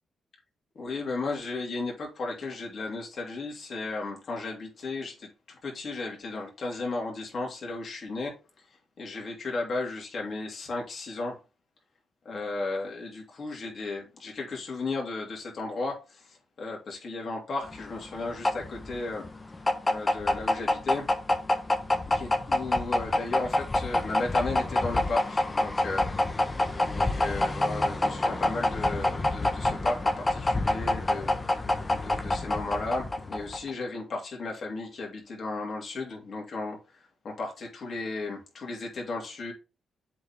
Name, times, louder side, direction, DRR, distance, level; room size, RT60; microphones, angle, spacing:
voice 1, 0.7-8.3 9.0-11.4 12.2-19.3 19.9-21.1 22.1-26.1 26.8-31.3 31.9-36.8 37.2-39.5, left 3 dB, 55° left, 3.0 m, -34 dB
sound 1, 17.7-33.7, left 1 dB, 25° left, 1.2 m, -27 dB
7.6 x 4.7 x 3.6 m
cardioid pair, 85°, 0 cm